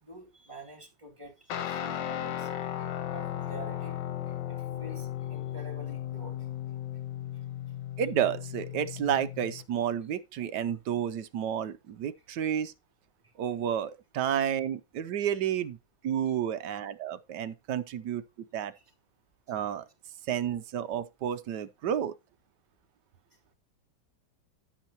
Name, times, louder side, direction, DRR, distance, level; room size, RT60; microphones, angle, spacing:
voice 1, 0.0-2.5 2.8-4.0 4.5-6.5 18.7-18.8, right 1 dB, 15° right, 2.6 m, -48 dB
Guitar, 1.5-9.6, left 11 dB, 70° left, 1.5 m, -36 dB
voice 2, 8.0-12.7 13.4-15.8 16.0-18.2 18.5-18.7 19.5-19.8 20.3-22.1, right 9 dB, 70° right, 1.2 m, -31 dB
11.0 x 8.6 x 2.8 m
omnidirectional pair, 2.1 m